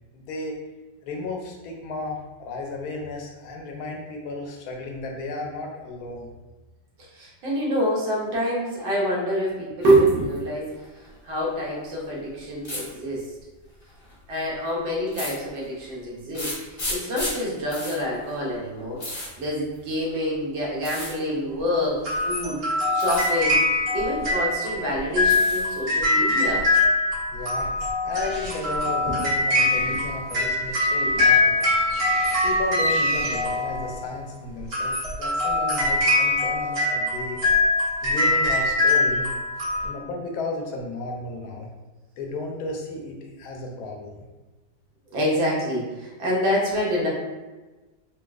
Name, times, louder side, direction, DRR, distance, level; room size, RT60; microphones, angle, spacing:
voice 1, 0.1-0.6 1.0-6.3 27.3-27.7 28.0-31.7 32.4-37.4 38.0-39.3 39.8-41.7 42.2-44.2, left 2 dB, 70° left, 1 dB, 0.9 m, -33 dB
voice 2, 7.1-10.7 11.2-13.3 14.3-16.5 16.9-19.0 19.4-22.6 22.9-23.6 23.9-26.7 29.9-30.0 31.0-31.2 45.1-47.1, equal, 85° right, -4 dB, 1.6 m, -26 dB
sound 1, 9.8-10.4 10.7-11.4 12.6-12.9 13.8-14.1 15.1-15.9 16.3-20.2 20.8-21.1 22.1-22.5 22.9-23.3 23.7-24.5 24.8-25.8 26.1-26.8, left 1 dB, 30° left, 0.5 m, -35 dB
sound 2, 22.0-34.0 34.6-39.9, left 2 dB, 65° right, 1.8 m, -23 dB
Bird, 28.1-34.6, right 1 dB, 45° right, 0.9 m, -40 dB
4.2 x 2.2 x 2.3 m, 1.2 s
omnidirectional pair, 2.0 m